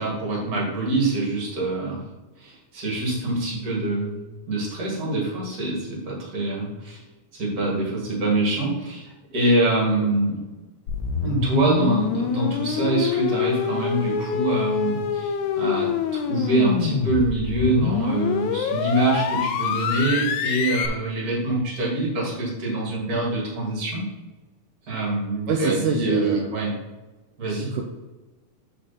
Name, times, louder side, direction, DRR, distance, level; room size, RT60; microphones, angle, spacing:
voice 1, 0.0-2.0 2.4-4.2 4.5-7.0 7.3-10.4 11.2-24.0 24.9-26.7 27.4-27.7, right 2 dB, 30° right, -3 dB, 2.4 m, -25 dB
sound 1, 10.9-20.9, left 8 dB, 80° left, 1.8 m, -26 dB
voice 2, 25.5-26.5 27.5-27.8, right 5 dB, 80° right, 1 dB, 2.0 m, -24 dB
7.3 x 4.9 x 4.3 m, 1.1 s
omnidirectional pair, 3.8 m